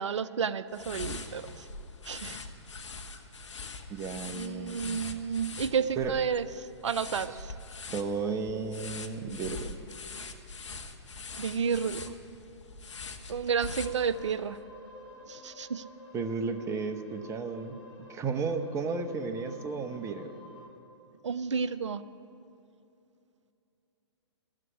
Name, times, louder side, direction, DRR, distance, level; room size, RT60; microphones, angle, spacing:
voice 1, 0.0-1.4 2.1-2.4 4.4-6.4 6.8-7.3 11.4-12.0 13.3-14.6 15.3-15.8 21.2-22.0, right 6 dB, 80° right, 14 dB, 0.5 m, -31 dB
sound 1, 0.7-14.4, left 3 dB, 75° left, 1.1 m, -43 dB
voice 2, 3.9-5.0 6.0-6.1 7.3-7.5 7.9-9.7 16.1-17.8 18.1-20.4, right 4 dB, 20° right, 7 dB, 0.9 m, -33 dB
sound 2, 13.6-20.7, left 2 dB, 25° left, 3.1 m, -51 dB
14.0 x 7.5 x 9.9 m, 2.7 s
hypercardioid pair, 120°, 15 cm